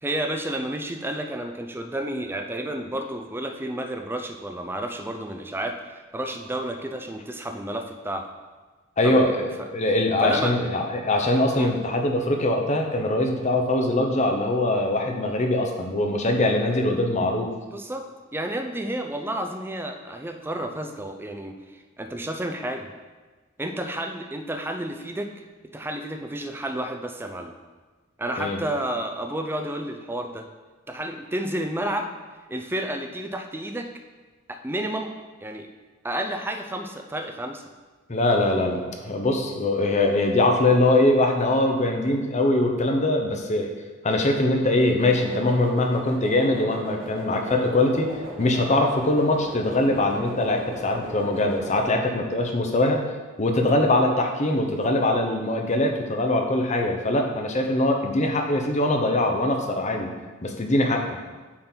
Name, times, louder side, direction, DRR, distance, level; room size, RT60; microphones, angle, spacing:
voice 1, 0.0-8.3 9.0-9.2 9.6-9.7 10.2-10.6 11.6-11.7 17.7-18.1 18.3-21.5 22.0-22.9 23.6-25.3 25.7-27.5 28.2-30.5 30.9-32.1 32.5-33.9 34.5-35.1 35.4-35.7 36.0-37.6, right 1 dB, 10° right, 5 dB, 0.5 m, -31 dB
voice 2, 9.0-17.5 28.4-28.6 38.1-43.7 44.0-48.1 48.4-53.0 53.4-60.1 60.4-61.0, left 2 dB, 35° left, 3 dB, 0.8 m, -22 dB
synth steam engine, 45.0-51.8, equal, 75° right, 1.8 m, -36 dB
8.6 x 3.9 x 4.4 m, 1.3 s
head